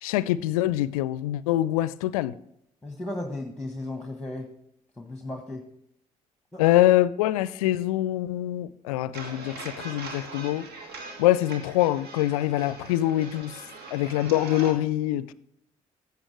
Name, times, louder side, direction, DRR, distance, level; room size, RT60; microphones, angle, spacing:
voice 1, 0.0-2.3 6.6-10.7 11.2-13.6 13.9-15.3, left 14 dB, 75° left, 0.4 m, -24 dB
voice 2, 2.8-4.5 5.0-5.7 6.5-6.6, left 2 dB, 5° left, 1.4 m, -35 dB
sound 1, 9.1-14.7, right 3 dB, 60° right, 1.7 m, -41 dB
14.5 x 6.9 x 3.3 m
figure-of-eight pair, 40°, 19 cm